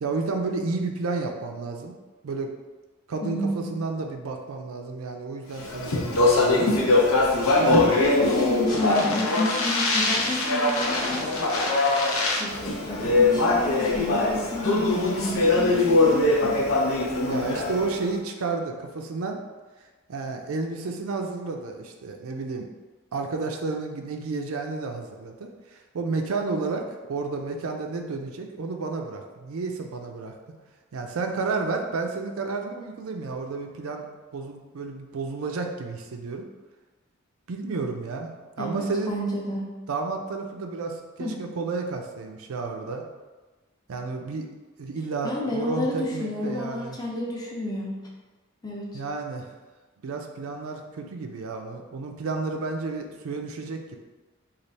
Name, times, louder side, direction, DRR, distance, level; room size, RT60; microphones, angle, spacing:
voice 1, 0.0-2.0 2.2-2.5 3.1-6.7 7.6-8.0 17.3-19.4 20.1-22.7 23.1-30.3 30.9-34.1 34.3-36.5 37.5-39.2 39.9-43.0 43.9-44.5 44.8-47.0 48.9-49.5 50.0-54.0, right 3 dB, 90° right, 3 dB, 0.5 m, -31 dB
voice 2, 3.2-3.8 7.9-11.3 12.4-16.6 38.6-39.6 41.2-41.4 45.2-47.9 48.6-48.9, left 1 dB, 20° left, -2 dB, 0.6 m, -30 dB
Speech, 5.6-18.0, left 2 dB, 85° left, 0.6 m, -22 dB
3.3 x 2.4 x 4.0 m, 1.3 s
head